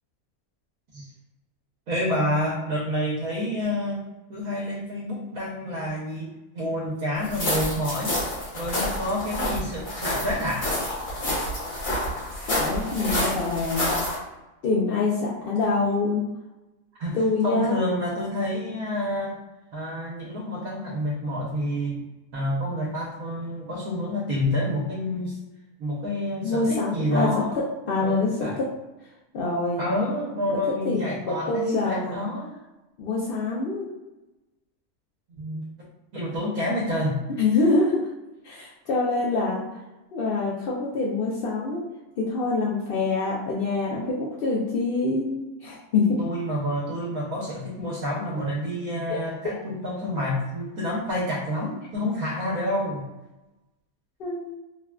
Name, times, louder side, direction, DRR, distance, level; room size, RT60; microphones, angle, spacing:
voice 1, 1.9-8.2 8.5-10.7 15.6-15.8 17.0-19.4 19.7-22.0 22.3-25.4 25.8-27.6 28.0-28.6 29.8-32.5 35.4-35.6 36.1-37.2 46.2-53.0, left 1 dB, 75° right, -4 dB, 1.1 m, -28 dB
sound 1, 7.2-14.2, left 1 dB, 60° left, 1.6 m, -28 dB
voice 2, 12.5-13.9 14.6-16.2 17.1-17.8 26.4-27.3 27.9-28.6 29.3-29.8 30.8-32.3 33.0-33.9 37.4-38.1 38.4-39.6 40.1-41.8 42.2-46.2 49.1-49.6 54.2-54.5, left 3 dB, 80° left, -5 dB, 0.5 m, -25 dB
3.4 x 2.3 x 2.2 m, 1.0 s
omnidirectional pair, 1.5 m